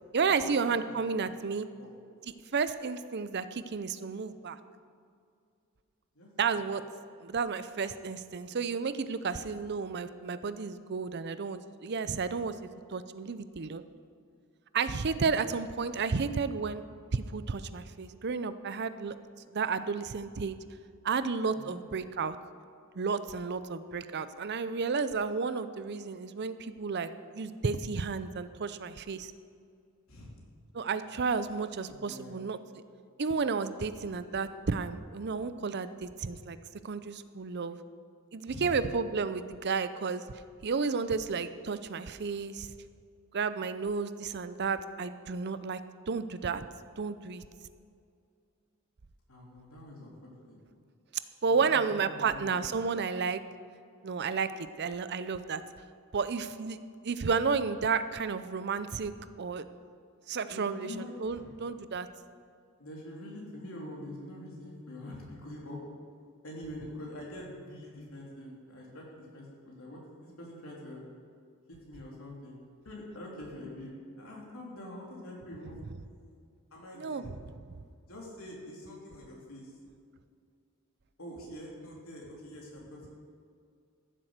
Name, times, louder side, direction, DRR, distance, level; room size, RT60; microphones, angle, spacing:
voice 1, 0.1-1.7 2.2-4.6 6.4-6.8 7.2-12.5 12.9-13.8 14.7-16.8 17.1-19.1 19.5-20.6 21.0-22.4 23.0-29.3 30.7-32.6 33.2-36.6 36.8-37.8 38.3-40.2 40.6-42.7 43.3-45.8 46.1-46.6 47.0-47.4 51.4-53.4 54.0-54.5 54.8-55.6 56.1-56.8 57.0-59.1 59.4-59.6 60.3-62.1 75.8-75.9 77.0-77.4, right 5 dB, 50° right, 12 dB, 0.6 m, -32 dB
voice 2, 31.9-32.4 38.5-38.7 49.3-50.1 50.4-50.6 51.6-51.8 52.3-52.7 60.5-61.6 62.8-65.8 66.4-71.0 71.7-72.6 72.8-75.8 76.7-77.2 78.1-79.7 81.2-83.2, left 1 dB, 75° left, -3 dB, 3.4 m, -45 dB
14.5 x 7.6 x 6.6 m, 2.3 s
head